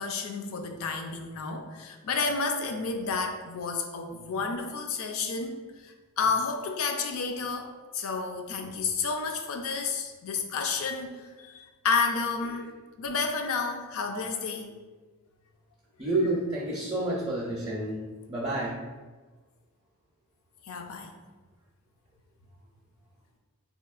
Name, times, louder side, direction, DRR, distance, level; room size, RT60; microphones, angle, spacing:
voice 1, 0.0-12.7 13.0-14.7 20.6-21.1, left 4 dB, 65° left, 5 dB, 0.4 m, -31 dB
voice 2, 16.0-18.0 18.3-18.8, right 2 dB, 20° right, -4 dB, 0.5 m, -29 dB
4.0 x 2.8 x 2.3 m, 1.3 s
head